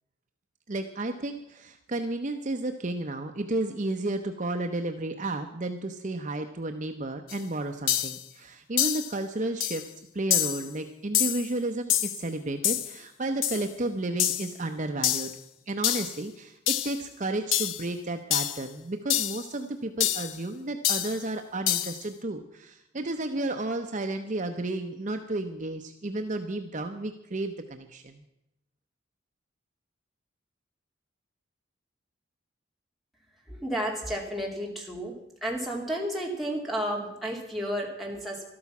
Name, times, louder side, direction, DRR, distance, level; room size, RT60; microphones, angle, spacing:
voice 1, 0.7-9.8 10.1-28.2, right 2 dB, 40° right, 5 dB, 0.7 m, -32 dB
sound 1, 7.3-7.4 7.9-8.2 8.8-9.1 9.6-9.9 10.3-10.7 11.1-11.5 11.9-12.2 12.6-12.9 13.4-13.7 14.2-14.5 15.0-15.4 15.8-16.2 16.7-17.0 17.5-17.8 18.3-18.6 19.1-19.4 20.0-20.3 20.8-21.2 21.7-22.0, left 11 dB, 80° left, 0.7 m, -27 dB
voice 2, 33.5-35.1 35.4-38.4, equal, ahead, -3 dB, 2.7 m, -32 dB
13.0 x 12.5 x 6.0 m, 0.85 s
head